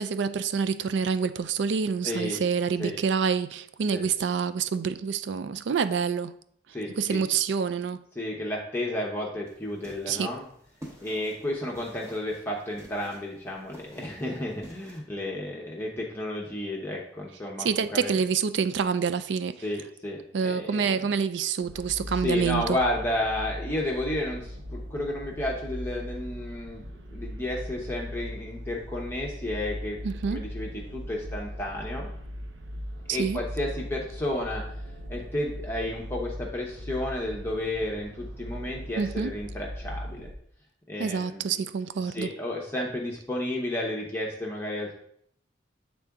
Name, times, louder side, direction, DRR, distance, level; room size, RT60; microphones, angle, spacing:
voice 1, 0.0-6.3 7.0-8.0 10.1-10.3 17.6-19.6 20.3-22.8 30.0-30.4 33.1-33.4 39.0-39.3 41.0-42.3, right 6 dB, 70° right, 0.4 m, -27 dB
voice 2, 2.0-2.4 2.8-3.0 3.9-4.1 6.7-7.2 8.2-10.5 11.0-18.1 19.6-21.1 22.2-30.0 30.3-32.1 33.1-34.6 35.1-40.3 40.9-41.6 42.0-45.0, left 1 dB, 10° left, 0.8 m, -32 dB
sound 1, 9.5-15.0, equal, 15° right, 1.0 m, -49 dB
sound 2, 21.6-40.3, equal, 90° right, 0.8 m, -39 dB
8.2 x 3.7 x 3.5 m
head